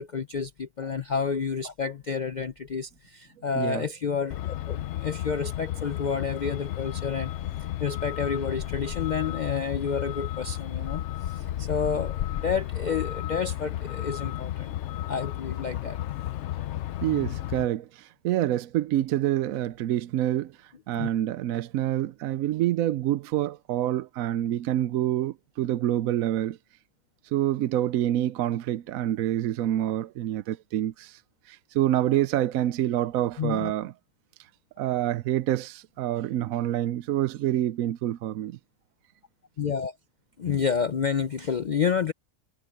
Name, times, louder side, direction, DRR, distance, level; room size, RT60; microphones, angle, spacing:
voice 1, 0.0-7.3 7.8-14.7 15.1-16.0 21.0-21.1 33.4-33.7 39.6-39.9 40.4-42.1, left 6 dB, 85° left, 0.4 m, -30 dB
Truck, 4.3-17.7, left 13 dB, 65° left, 0.7 m, -33 dB
voice 2, 17.0-26.6 27.2-31.2 31.5-33.9 34.8-38.6, right 13 dB, 70° right, 0.9 m, -27 dB
omnidirectional pair, 1.6 m